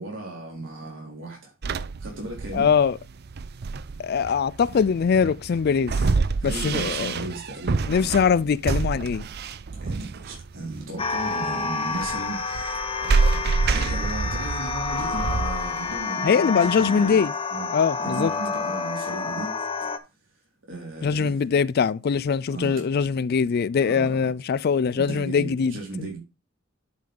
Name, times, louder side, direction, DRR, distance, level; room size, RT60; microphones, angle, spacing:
voice 1, 0.0-1.5 2.0-2.7 6.4-8.2 9.8-12.8 13.6-17.2 17.5-17.7 18.0-19.5 20.7-21.4 22.5-22.9 23.8-24.3 24.9-26.2, right 2 dB, 75° right, 4.2 m, -35 dB
sound 1, 1.6-16.0, right 4 dB, 55° right, 0.5 m, -28 dB
voice 2, 2.5-3.0 4.0-6.0 6.4-7.2 7.9-9.2 16.2-17.3 17.7-18.3 21.0-26.1, left 6 dB, 55° left, 0.4 m, -22 dB
sound 2, 11.0-20.0, left 4 dB, 30° left, 1.0 m, -29 dB
10.5 x 5.3 x 3.8 m
head